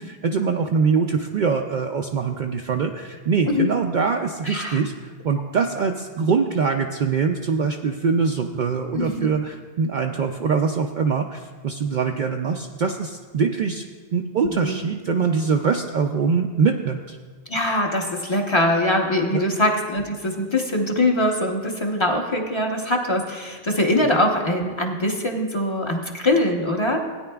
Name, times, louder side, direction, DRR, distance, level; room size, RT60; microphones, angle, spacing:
voice 1, 0.0-13.8 14.1-17.2 19.3-19.6, right 5 dB, 55° right, 3 dB, 0.6 m, -23 dB
voice 2, 4.4-4.8 8.9-9.3 14.4-14.8 17.5-27.0, left 1 dB, 30° left, 1 dB, 0.9 m, -22 dB
16.5 x 9.5 x 2.3 m, 1.5 s
omnidirectional pair, 1.1 m